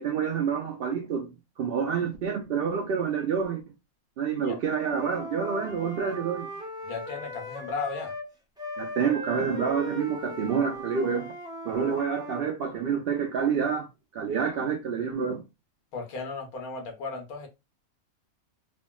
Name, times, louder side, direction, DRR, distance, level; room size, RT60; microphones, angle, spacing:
voice 1, 0.0-3.6 4.2-6.5 8.8-11.3 11.7-13.9 14.1-15.4, right 6 dB, 90° right, 0.5 m, -28 dB
Wind instrument woodwind instrument, 4.6-8.3 8.6-12.4, equal, 5° right, 0.4 m, -38 dB
voice 2, 6.8-8.1 15.9-17.5, left 4 dB, 75° left, 1.4 m, -35 dB
3.4 x 2.1 x 2.2 m
omnidirectional pair, 1.5 m